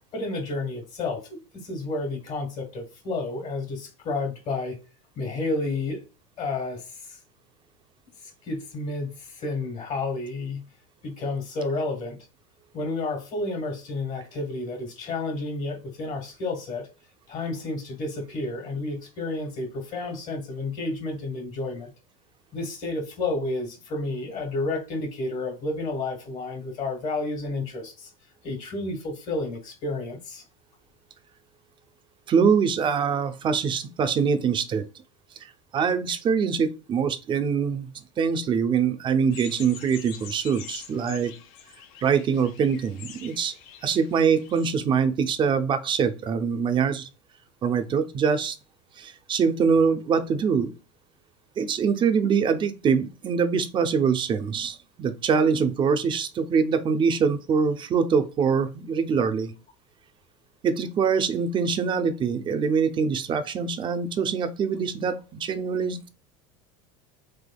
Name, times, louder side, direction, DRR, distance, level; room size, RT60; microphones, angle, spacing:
voice 1, 0.1-4.8 5.1-6.0 6.4-7.2 8.2-10.7 11.0-12.2 12.7-16.9 17.3-21.9 22.5-28.1 28.4-30.4, left 2 dB, 45° left, 1.4 m, -31 dB
voice 2, 32.3-34.8 35.4-37.9 38.2-41.3 42.0-43.5 43.8-47.1 47.6-48.6 49.0-50.7 51.6-59.5 60.6-66.1, right 6 dB, 30° right, 0.5 m, -24 dB
sound 1, 39.3-44.7, left 9 dB, 65° left, 0.8 m, -45 dB
3.4 x 3.3 x 2.2 m
supercardioid pair, 120°, 17 cm